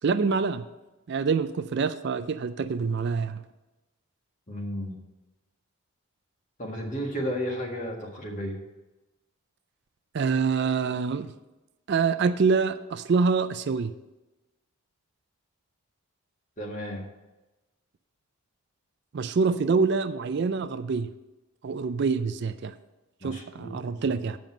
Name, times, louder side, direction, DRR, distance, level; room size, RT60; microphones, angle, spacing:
voice 1, 0.0-0.6 1.1-3.4 10.1-11.3 11.9-13.9 19.1-21.1 21.6-22.7 23.2-24.4, right 5 dB, 50° right, 11 dB, 0.3 m, -26 dB
voice 2, 4.5-4.9 6.6-8.6 16.6-17.0 23.2-24.2, equal, 35° left, 0 dB, 1.6 m, -33 dB
7.6 x 5.2 x 7.3 m, 1.1 s
head